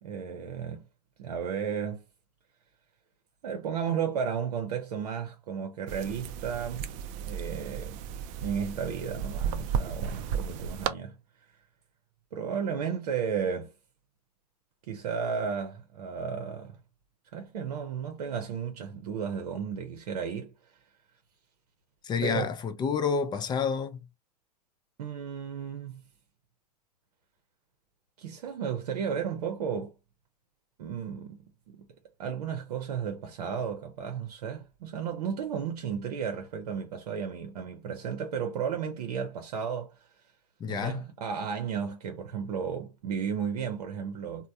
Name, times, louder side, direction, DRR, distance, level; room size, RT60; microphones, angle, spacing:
voice 1, 0.0-0.8 1.2-2.0 3.4-6.9 7.1-8.0 8.4-11.2 12.3-13.7 14.9-16.8 17.3-20.5 22.2-22.5 25.0-26.0 28.2-29.9 30.8-31.4 31.7-31.9 32.2-39.9 40.7-44.5, right 7 dB, 70° right, 0.7 m, -33 dB
sound 1, 5.9-10.9, right 8 dB, 40° right, 0.4 m, -34 dB
voice 2, 22.0-24.0 40.6-41.0, left 6 dB, 20° left, 0.5 m, -29 dB
3.2 x 2.1 x 2.6 m
hypercardioid pair, 100°, 20 cm